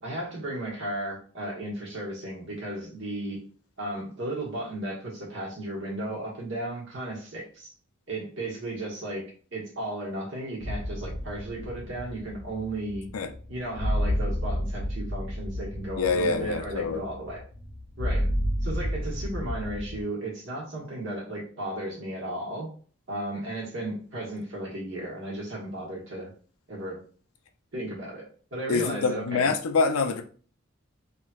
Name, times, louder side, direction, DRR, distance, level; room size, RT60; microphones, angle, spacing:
voice 1, 0.0-3.4 3.8-7.7 8.1-9.2 9.5-13.1 13.5-17.4 18.0-18.3 18.6-22.7 23.1-26.3 26.7-27.0 27.7-29.5, right 1 dB, 65° right, -3 dB, 1.3 m, -34 dB
sound 1, 10.6-20.0, equal, 35° left, 0.7 m, -31 dB
voice 2, 16.0-17.0 28.7-30.2, left 4 dB, 90° left, 6 dB, 0.5 m, -25 dB
3.2 x 2.8 x 2.3 m, 0.42 s
head